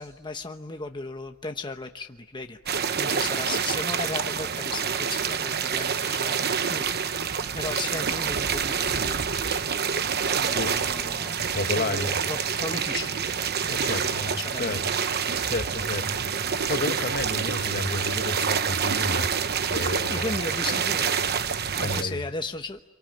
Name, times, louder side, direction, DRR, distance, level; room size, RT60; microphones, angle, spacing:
voice 1, 0.0-7.2 7.5-9.3 10.3-11.3 11.7-13.1 13.6-14.8 20.1-21.1 21.7-22.8, left 3 dB, 20° left, 1.0 m, -36 dB
sound 1, 2.7-22.0, right 7 dB, 50° right, 1.0 m, -27 dB
voice 2, 11.4-12.2 13.7-14.8 15.1-19.3 19.7-20.3 21.8-22.2, left 2 dB, 45° left, 1.3 m, -31 dB
27.5 x 23.5 x 9.0 m
head